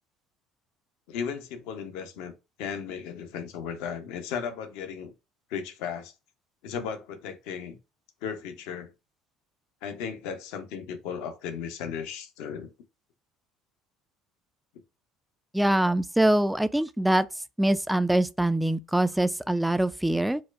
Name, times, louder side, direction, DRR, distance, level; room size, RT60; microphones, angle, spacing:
voice 1, 1.1-2.3 2.6-5.1 5.5-6.1 6.6-7.8 8.2-8.9 9.8-12.7, left 7 dB, 65° left, 0.6 m, -35 dB
voice 2, 15.5-17.3 17.6-20.4, right 1 dB, 5° right, 0.3 m, -24 dB
4.2 x 2.1 x 2.4 m
figure-of-eight pair, 60°, 0 cm